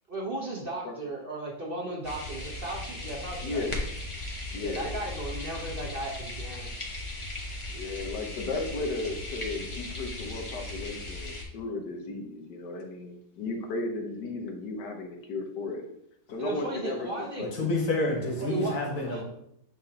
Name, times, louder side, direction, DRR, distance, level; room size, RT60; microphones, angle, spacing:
voice 1, 0.1-3.7 4.6-6.7 16.4-17.5 18.4-19.2, right 2 dB, 40° right, -2 dB, 1.0 m, -35 dB
sound 1, 2.0-11.4, left 2 dB, 25° left, 0.9 m, -37 dB
voice 2, 3.4-3.8 4.5-4.9 7.7-15.8 16.3-17.1 17.4-17.7, left 3 dB, 90° left, 3 dB, 1.6 m, -35 dB
voice 3, 17.4-19.2, left 2 dB, 55° left, -1 dB, 1.7 m, -28 dB
8.9 x 3.8 x 2.9 m, 0.75 s
omnidirectional pair, 1.8 m